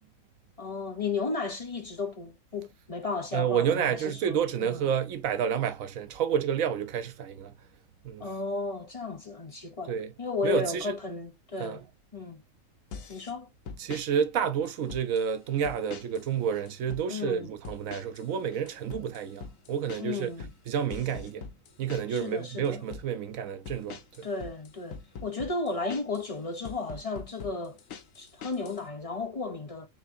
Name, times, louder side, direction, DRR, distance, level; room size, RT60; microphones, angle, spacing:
voice 1, 0.6-4.9 8.2-11.8 12.1-12.4 13.1-13.5 17.1-17.5 20.0-20.5 22.1-22.8 24.2-27.8 28.2-29.9, left 3 dB, 35° left, 0.6 m, -34 dB
voice 2, 3.3-7.5 8.0-8.3 9.9-10.1 10.4-10.9 11.6-11.8 13.8-20.3 20.7-21.5 21.8-24.3, right 8 dB, 85° right, 1.1 m, -30 dB
sound 1, 12.9-13.3 13.7-14.1 14.7-15.3 15.6-16.3 16.5-17.1 17.6-18.3 18.5-22.3 22.6-23.1 23.7-26.3 26.6-28.8, left 5 dB, 80° left, 1.1 m, -43 dB
4.4 x 3.4 x 2.6 m
omnidirectional pair, 1.4 m